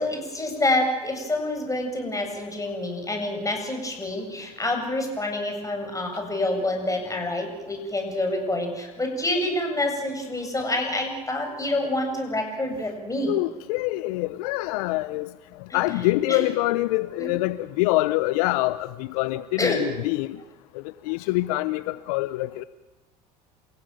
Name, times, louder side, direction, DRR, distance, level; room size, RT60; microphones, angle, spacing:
voice 1, 0.0-13.3 15.7-15.8 16.3-16.4 17.2-17.3 19.6-19.8, left 1 dB, 15° left, 4 dB, 7.8 m, -27 dB
voice 2, 13.3-15.3 15.7-20.4 21.1-22.6, left 19 dB, 70° left, 16 dB, 0.7 m, -25 dB
28.0 x 16.5 x 9.2 m, 1.1 s
hypercardioid pair, 70°, 20 cm